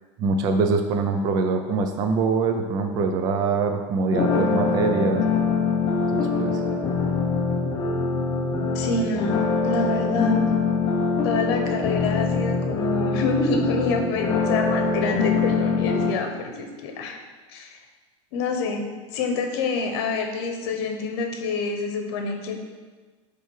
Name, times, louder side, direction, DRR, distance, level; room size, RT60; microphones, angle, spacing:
voice 1, 0.2-5.2 6.1-6.6, right 4 dB, 25° right, 5 dB, 0.3 m, -24 dB
sound 1, 4.1-16.1, left 4 dB, 25° left, 0.6 m, -24 dB
voice 2, 8.7-10.5 11.2-17.2 17.5-17.8 18.3-18.9 19.1-22.5, left 3 dB, 55° left, 4 dB, 1.0 m, -27 dB
8.7 x 3.4 x 4.8 m, 1.4 s
supercardioid pair, 170°, 16 cm